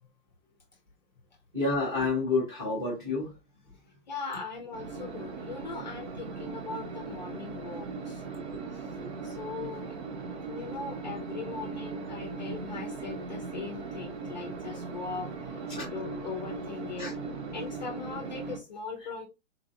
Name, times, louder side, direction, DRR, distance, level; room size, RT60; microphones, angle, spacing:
voice 1, 1.5-3.3 9.0-9.2 15.7-15.9 17.0-17.1, left 3 dB, 10° right, 0.7 m, -29 dB
voice 2, 4.1-8.2 8.7-10.0 10.5-17.1 17.5-19.3, left 5 dB, 40° left, 0.5 m, -40 dB
sound 1, 4.7-18.6, right 4 dB, 60° right, 0.9 m, -38 dB
3.8 x 2.4 x 2.6 m
hypercardioid pair, 175°, 36 cm